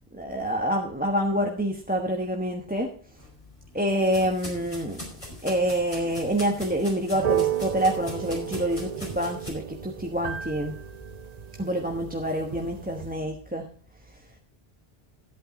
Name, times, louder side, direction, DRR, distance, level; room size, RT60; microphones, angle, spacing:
voice 1, 0.1-3.0 3.7-5.0 5.4-10.8 11.6-13.7, equal, 10° right, 2 dB, 1.1 m, -27 dB
sound 1, 3.2-9.5, left 1 dB, 30° left, 4.5 m, -41 dB
sound 2, 7.1-13.1, right 10 dB, 45° right, 0.6 m, -33 dB
13.5 x 8.9 x 4.2 m, 0.39 s
omnidirectional pair, 1.0 m